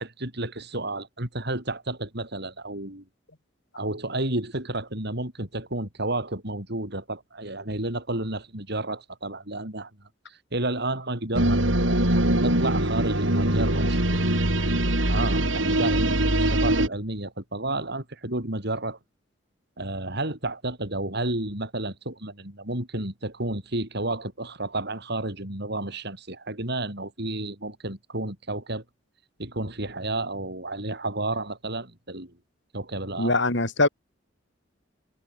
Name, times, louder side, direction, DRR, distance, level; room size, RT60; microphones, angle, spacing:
voice 1, 0.0-3.0 3.8-9.9 10.3-14.4 15.1-19.0 19.8-28.8 29.4-32.3 32.7-33.3, right 2 dB, 60° right, 6.2 m, -31 dB
sound 1, 11.3-16.9, right 1 dB, 75° right, 6.3 m, -22 dB
voice 2, 33.2-33.9, left 2 dB, 65° left, 5.9 m, -22 dB
head